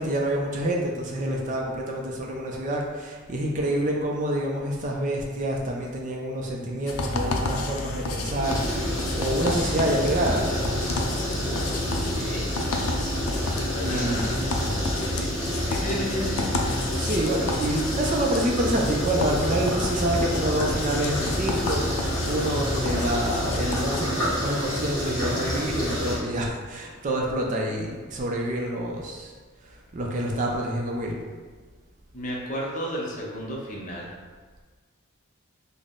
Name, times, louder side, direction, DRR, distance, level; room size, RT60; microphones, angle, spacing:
voice 1, 0.0-10.5 13.3-14.9 16.9-29.3 29.6-31.2, right 1 dB, 35° right, -1 dB, 0.3 m, -27 dB
sound 1, 6.9-24.1, left 2 dB, 80° left, 0.4 m, -31 dB
sound 2, 8.0-17.3, equal, 20° right, 1.5 m, -39 dB
sound 3, 8.4-26.2, equal, 15° left, 0.9 m, -29 dB
voice 2, 11.9-12.5 13.4-14.4 15.0-15.3 15.7-16.5 32.1-34.1, equal, 35° left, -2 dB, 0.6 m, -33 dB
3.8 x 2.0 x 3.6 m, 1.5 s
head